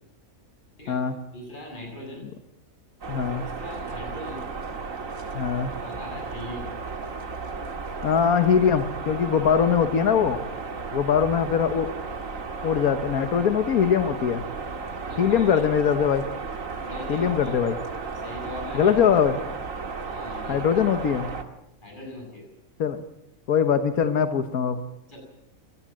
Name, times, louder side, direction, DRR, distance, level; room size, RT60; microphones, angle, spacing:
voice 1, 1.3-2.3 3.4-4.5 5.6-6.7 15.1-15.8 16.9-17.5 18.2-18.9 20.1-20.6 21.8-22.5 25.1-25.2, left 1 dB, 35° left, 1 dB, 7.9 m, -40 dB
sound 1, 3.0-21.4, right 4 dB, 65° right, 2.1 m, -34 dB
voice 2, 3.1-3.4 5.3-5.7 8.0-10.4 10.9-11.9 12.6-14.4 15.2-16.2 17.1-17.8 18.7-19.4 20.5-21.3 22.8-23.0 23.5-24.8, left 7 dB, 90° left, 8 dB, 1.6 m, -22 dB
24.0 x 18.0 x 7.5 m, 0.86 s
omnidirectional pair, 1.5 m